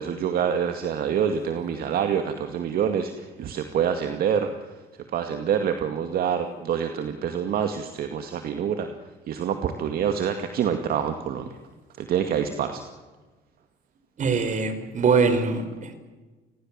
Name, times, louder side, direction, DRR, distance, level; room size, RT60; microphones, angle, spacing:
voice 1, 0.0-4.8 5.1-8.9 9.3-11.5 12.0-12.8, right 8 dB, 65° right, 7 dB, 2.3 m, -26 dB
voice 2, 14.2-15.9, right 5 dB, 45° right, 10 dB, 4.9 m, -23 dB
29.5 x 20.5 x 7.6 m, 1.2 s
cardioid pair, 110°, 17 cm